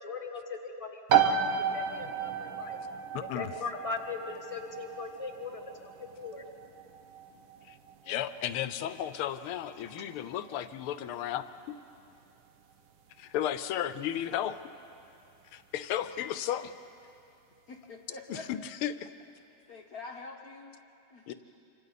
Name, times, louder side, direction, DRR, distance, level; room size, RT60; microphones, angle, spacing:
voice 1, 0.0-1.4 1.7-2.8 3.3-5.6 6.0-6.4, left 4 dB, 20° left, 2 dB, 1.3 m, -39 dB
sound 1, 1.1-15.6, right 7 dB, 70° right, 1.6 m, -34 dB
voice 2, 3.1-3.5 7.7-7.8 8.1-11.5 13.2-14.6 15.5-16.7 18.3-19.1 21.3-21.4, left 11 dB, 85° left, 12 dB, 1.6 m, -34 dB
voice 3, 17.7-18.5 19.7-20.8 21.1-21.2, left 3 dB, 55° left, 1 dB, 1.2 m, -45 dB
26.5 x 25.5 x 4.1 m, 2.7 s
omnidirectional pair, 2.3 m